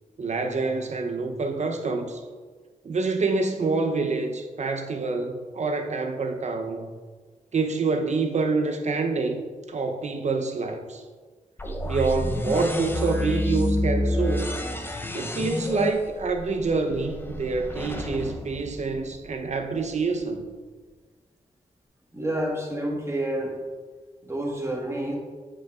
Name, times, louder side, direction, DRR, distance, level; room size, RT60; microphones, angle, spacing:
voice 1, 0.2-2.2 2.8-6.9 7.5-9.4 9.7-11.0 11.8-14.5 15.1-20.5, right 3 dB, 55° right, 5 dB, 0.6 m, -26 dB
sound 1, 11.6-19.5, left 1 dB, 15° left, 0.5 m, -29 dB
voice 2, 22.1-23.6 24.2-25.2, right 1 dB, 20° right, -1 dB, 1.3 m, -29 dB
7.7 x 6.4 x 2.3 m, 1.5 s
wide cardioid pair, 85°, 14 cm